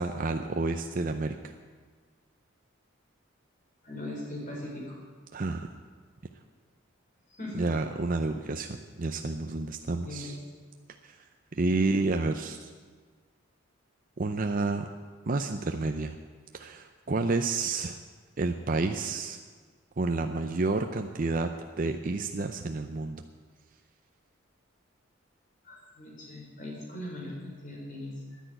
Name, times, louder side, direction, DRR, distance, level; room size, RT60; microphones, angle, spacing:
voice 1, 0.0-1.5 5.3-5.8 7.6-10.4 11.0-11.2 11.6-12.7 14.2-14.9 15.3-16.2 16.5-18.0 18.4-19.4 20.0-21.5 21.8-23.2, right 3 dB, 40° right, 6 dB, 0.6 m, -30 dB
voice 2, 3.8-5.0 7.3-7.7 10.0-10.3 25.6-28.4, left 1 dB, 40° left, -2 dB, 4.5 m, -40 dB
10.0 x 10.0 x 9.3 m, 1.5 s
head